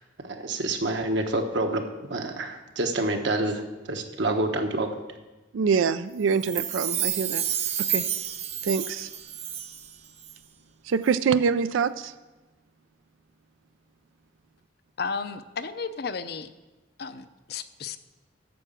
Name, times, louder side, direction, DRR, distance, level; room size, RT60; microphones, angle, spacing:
voice 1, 0.2-1.8 2.1-3.6 3.9-4.9, right 2 dB, 65° right, 4 dB, 1.2 m, -27 dB
voice 2, 5.5-7.4 7.8-8.0 8.6-9.1 10.9-12.1, right 6 dB, 85° right, 13 dB, 0.4 m, -25 dB
Chime, 6.3-9.9 10.2-10.3, right 9 dB, 35° right, 0.8 m, -30 dB
voice 3, 15.0-16.5 17.0-18.0, left 5 dB, 50° left, 11 dB, 0.5 m, -33 dB
9.3 x 6.7 x 7.4 m, 1.2 s
head